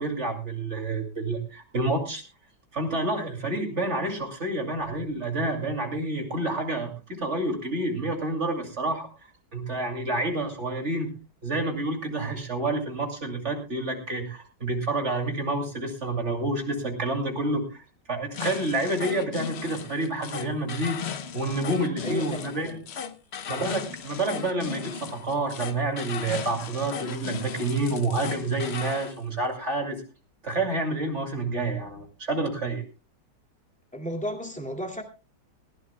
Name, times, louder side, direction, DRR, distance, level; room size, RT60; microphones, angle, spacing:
voice 1, 0.0-2.2 2.7-9.1 9.5-11.1 11.4-21.0 21.3-22.8 23.5-30.0 30.4-32.8, right 2 dB, 40° right, 3 dB, 2.9 m, -29 dB
sound 1, 18.3-29.1, left 7 dB, 50° left, 0.8 m, -36 dB
voice 2, 22.0-22.8 23.5-23.8 33.9-35.0, equal, 5° left, 2 dB, 2.1 m, -33 dB
20.0 x 15.5 x 2.2 m, 0.32 s
omnidirectional pair, 1.9 m